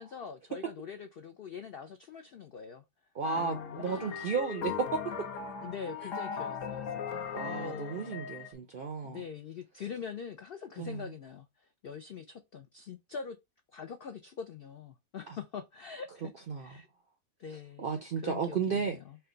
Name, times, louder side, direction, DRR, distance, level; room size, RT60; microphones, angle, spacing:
voice 1, 0.0-2.8 3.7-4.3 5.6-8.3 9.0-13.4 13.7-16.3 16.6-16.9 17.4-17.9 18.2-19.2, left 6 dB, 80° left, 0.5 m, -43 dB
voice 2, 3.1-5.0 7.3-9.2 10.8-11.1 15.3-15.4 16.5-16.8 17.8-19.0, right 5 dB, 70° right, 0.5 m, -33 dB
sound 1, 3.2-8.5, left 7 dB, 65° left, 1.1 m, -38 dB
4.4 x 2.2 x 3.8 m
omnidirectional pair, 1.6 m